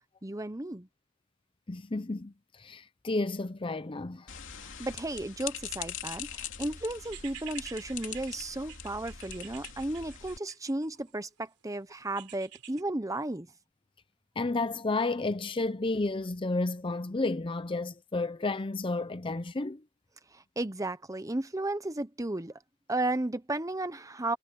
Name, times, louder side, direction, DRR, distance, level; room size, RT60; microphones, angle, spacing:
voice 1, 0.2-0.9 4.8-13.5 20.3-22.5 22.9-24.4, right 2 dB, 15° right, 0.9 m, -34 dB
voice 2, 1.7-4.3 14.4-19.8, left 2 dB, 25° left, 0.6 m, -32 dB
sound 1, 4.3-10.4, left 8 dB, 55° left, 3.2 m, -42 dB
sound 2, 7.0-11.2 12.2-12.8, right 11 dB, 90° right, 3.6 m, -48 dB
head